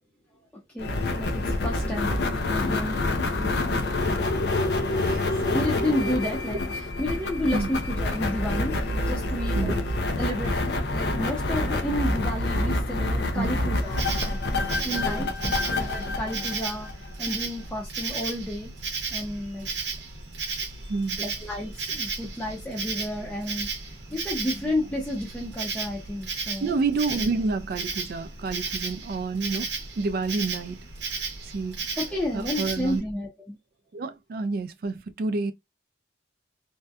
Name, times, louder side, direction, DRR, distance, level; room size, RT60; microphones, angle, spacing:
voice 1, 0.7-2.2 2.5-3.0 5.5-8.8 9.1-9.8 10.2-14.4 14.8-18.7 19.1-19.7 20.7-26.7 32.0-33.6, left 1 dB, 5° left, 0.5 m, -31 dB
sound 1, 0.8-17.3, left 2 dB, 60° left, 0.4 m, -27 dB
Insect, 13.8-33.0, right 4 dB, 70° right, 0.7 m, -34 dB
voice 2, 15.0-15.6 20.9-21.2 26.6-30.8 31.4-31.9 32.3-33.0 33.9-35.5, right 3 dB, 50° right, 0.3 m, -29 dB
2.6 x 2.2 x 2.3 m
head